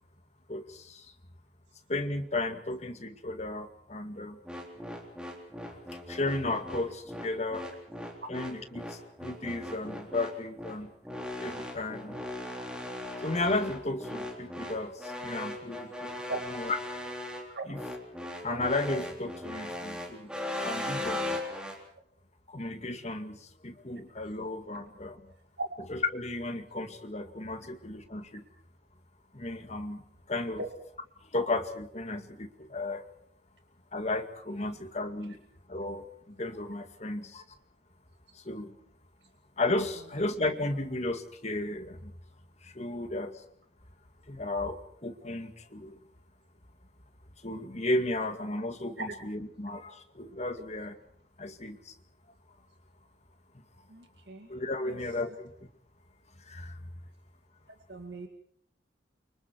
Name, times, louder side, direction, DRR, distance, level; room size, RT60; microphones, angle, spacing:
voice 1, 0.5-1.1 1.9-4.4 6.1-7.7 8.3-10.9 11.4-12.2 13.2-16.8 17.6-17.8 18.4-20.3 20.6-21.3 22.5-25.2 25.9-28.4 29.3-30.0 30.3-30.6 31.3-33.0 33.9-35.4 35.7-37.4 38.3-38.7 39.6-42.1 42.6-43.4 44.3-46.0 47.4-51.0 51.4-51.9 54.5-55.5 56.5-56.8, left 2 dB, 40° left, 7 dB, 2.2 m, -34 dB
sound 1, 4.5-21.8, left 1 dB, 5° right, 3.8 m, -38 dB
voice 2, 53.9-54.5 54.8-55.0 57.9-58.3, right 2 dB, 65° right, 3 dB, 2.2 m, -37 dB
30.0 x 25.0 x 4.7 m, 0.66 s
head